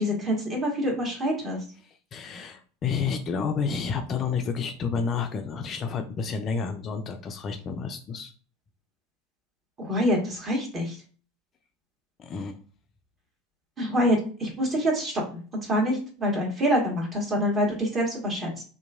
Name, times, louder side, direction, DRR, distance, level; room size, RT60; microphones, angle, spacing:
voice 1, 0.0-1.6 9.8-11.0 13.8-18.5, equal, 30° right, -1 dB, 1.3 m, -26 dB
voice 2, 1.8-8.3 12.2-12.6, left 5 dB, 35° left, 6 dB, 0.3 m, -30 dB
2.8 x 2.5 x 2.4 m, 0.41 s
figure-of-eight pair, 80°, 0 cm